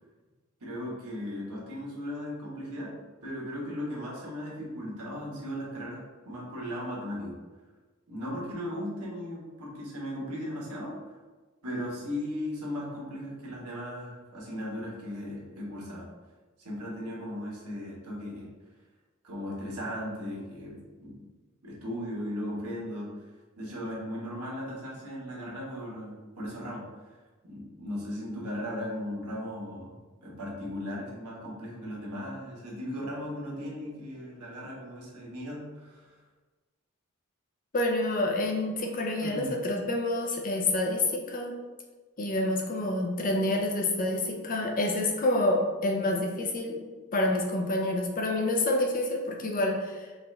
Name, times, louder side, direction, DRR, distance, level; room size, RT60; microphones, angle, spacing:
voice 1, 0.6-2.9 3.2-7.4 8.1-11.0 11.6-16.1 16.6-18.5 19.2-21.2 21.6-23.1 23.6-26.8 27.4-29.9 30.2-36.2 39.2-39.5, equal, 85° right, -4 dB, 1.3 m, -37 dB
voice 2, 37.7-41.5 42.2-46.8 47.1-50.1, left 2 dB, 40° left, 1 dB, 0.6 m, -28 dB
4.9 x 2.5 x 3.2 m, 1.3 s
head